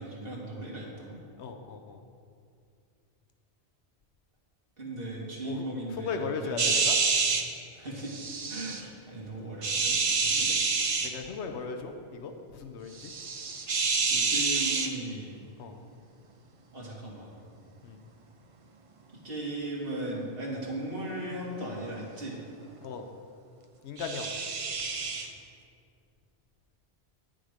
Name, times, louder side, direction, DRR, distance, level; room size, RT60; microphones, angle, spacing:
voice 1, 0.0-1.2 4.8-6.8 7.7-8.2 8.5-10.5 14.1-15.3 16.7-17.3 19.2-22.4, right 1 dB, 60° right, -4 dB, 2.2 m, -37 dB
voice 2, 1.4-2.0 5.4-5.6 6.0-6.9 11.0-13.1 15.6-15.8 17.8-18.0 22.8-23.1 23.8-24.3, left 5 dB, 85° left, 5 dB, 1.0 m, -37 dB
sound 1, 6.6-7.4 8.1-8.8 9.6-11.1 13.0-14.9 24.0-25.3, right 4 dB, 40° right, 0.6 m, -28 dB
9.4 x 7.6 x 5.0 m, 2.4 s
omnidirectional pair, 1.1 m